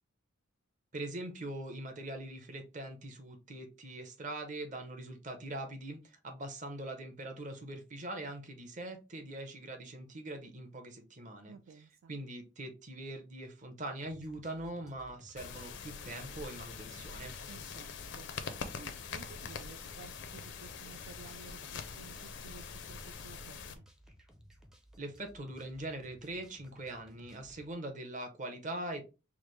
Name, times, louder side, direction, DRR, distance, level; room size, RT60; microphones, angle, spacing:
voice 1, 0.9-11.6 12.1-17.3 25.0-29.0, right 1 dB, 40° right, 0.8 m, -42 dB
voice 2, 11.5-12.1 17.5-18.3 18.7-23.9, right 5 dB, 75° right, 0.4 m, -54 dB
sound 1, 14.0-27.7, equal, 5° right, 0.4 m, -59 dB
sound 2, 15.4-23.7, left 5 dB, 60° left, 0.5 m, -44 dB
4.8 x 2.0 x 3.1 m
head